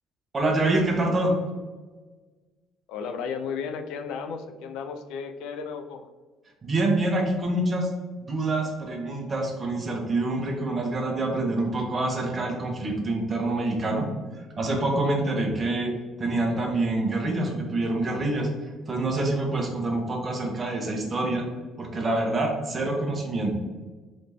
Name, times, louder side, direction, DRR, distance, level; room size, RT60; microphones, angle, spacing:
voice 1, 0.3-1.3 6.6-7.9 8.2-14.1 14.6-15.9 16.2-18.5 18.9-21.4 21.8-23.5, right 2 dB, 25° right, 1 dB, 0.9 m, -26 dB
voice 2, 2.9-6.1, left 6 dB, 85° left, 6 dB, 0.4 m, -34 dB
3.8 x 3.3 x 3.4 m, 1.3 s
cardioid pair, 145°, 0 cm